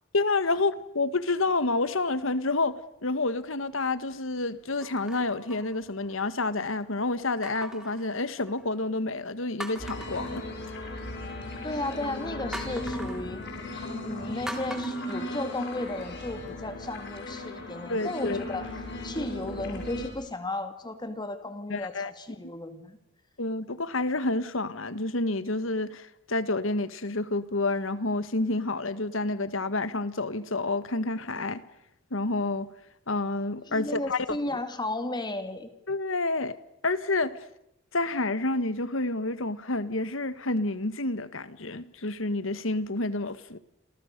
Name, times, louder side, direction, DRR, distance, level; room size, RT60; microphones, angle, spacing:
voice 1, 0.1-10.4 17.9-18.4 21.7-22.1 23.4-31.6 32.1-32.7 33.1-34.2 35.9-36.6 36.8-37.4 37.9-43.6, left 2 dB, 75° left, 1.6 m, -29 dB
sound 1, 1.9-2.4 3.0-3.2 4.8-6.3 7.4-8.8 9.2-9.3 9.6-11.1 12.5-13.3 14.5-16.0 16.5-16.6, equal, 5° right, 3.1 m, -42 dB
sound 2, 9.8-20.1, left 1 dB, 60° left, 6.4 m, -37 dB
voice 2, 11.6-13.4 14.0-18.7 19.0-23.0 33.6-35.7, left 2 dB, 20° left, 2.3 m, -34 dB
28.5 x 28.5 x 6.8 m
head